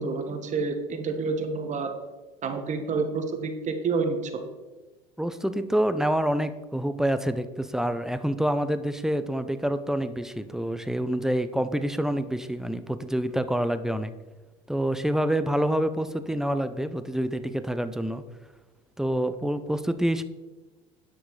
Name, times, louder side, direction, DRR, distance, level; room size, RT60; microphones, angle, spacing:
voice 1, 0.0-1.9 2.4-4.4, right 4 dB, 40° right, 6 dB, 1.5 m, -28 dB
voice 2, 5.2-14.1 14.7-18.2 19.0-20.2, right 1 dB, 5° right, 11 dB, 0.7 m, -27 dB
9.8 x 6.1 x 4.8 m, 1.2 s
hypercardioid pair, 80°, 19 cm